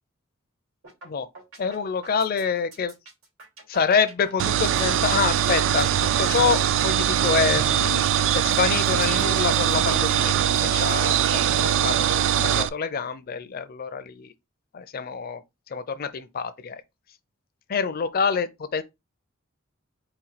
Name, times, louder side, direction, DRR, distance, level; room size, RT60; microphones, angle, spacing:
sound 1, 0.8-1.1 1.4-11.4, right 3 dB, 85° right, 2.6 m, -46 dB
voice 1, 1.6-2.9 3.7-5.9 6.2-8.1 8.3-14.3 14.7-15.4 15.7-16.8 17.7-18.8, left 6 dB, 45° left, 0.5 m, -26 dB
sound 2, 4.4-12.7, right 9 dB, 65° right, 0.3 m, -22 dB
4.2 x 2.3 x 4.0 m
head